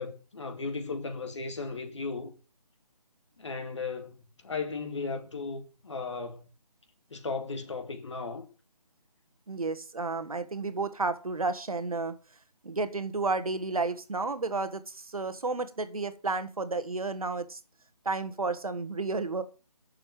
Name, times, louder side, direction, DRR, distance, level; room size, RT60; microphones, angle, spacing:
voice 1, 0.0-2.3 3.4-4.2 4.4-6.4 7.1-8.5, left 4 dB, 45° left, 2.0 m, -36 dB
voice 2, 9.5-12.1 12.6-17.6 18.0-19.4, right 3 dB, 60° right, 1.4 m, -32 dB
9.4 x 6.9 x 7.4 m
figure-of-eight pair, 155°, 20 cm